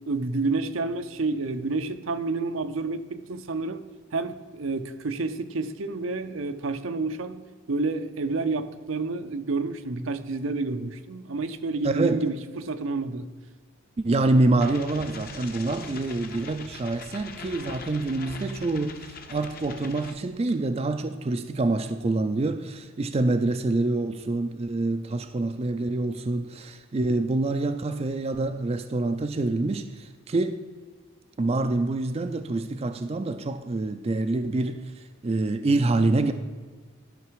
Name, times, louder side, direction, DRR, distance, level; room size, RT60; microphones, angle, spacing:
voice 1, 0.1-3.8 4.1-13.3, right 3 dB, 75° right, 0.6 m, -29 dB
voice 2, 11.8-12.3 14.0-30.6 31.4-36.3, right 2 dB, 30° right, 0.4 m, -26 dB
sound 1, 14.6-20.1, left 4 dB, 45° left, 0.8 m, -42 dB
12.0 x 5.9 x 4.7 m
head